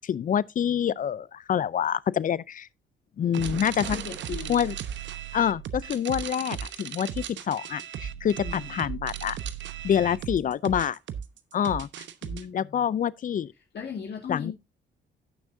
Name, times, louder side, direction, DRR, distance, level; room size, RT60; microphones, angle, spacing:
voice 1, 0.0-2.7 3.2-4.0 4.5-4.7 5.3-9.4 9.8-11.0 11.5-11.9 12.5-13.5 14.3-14.5, left 9 dB, 40° left, 0.5 m, -26 dB
sound 1, 3.3-12.4, right 9 dB, 70° right, 1.0 m, -36 dB
voice 2, 3.8-4.6 8.4-8.8 12.2-12.8 13.7-14.5, left 7 dB, 55° left, 2.0 m, -37 dB
16.5 x 6.2 x 2.7 m
cardioid pair, 90°, 20 cm